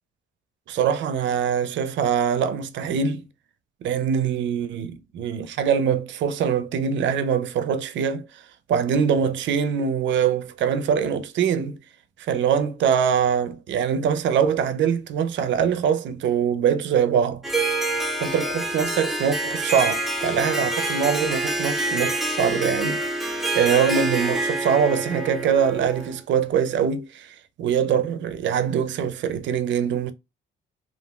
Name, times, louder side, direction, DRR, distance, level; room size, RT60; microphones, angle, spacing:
voice 1, 0.7-3.3 3.8-8.4 8.7-11.8 12.2-17.4 18.2-30.1, right 7 dB, 70° right, 0.4 m, -23 dB
Harp, 17.4-26.2, right 2 dB, ahead, 0.5 m, -26 dB
3.0 x 2.3 x 2.2 m
cardioid pair, 90°, 20 cm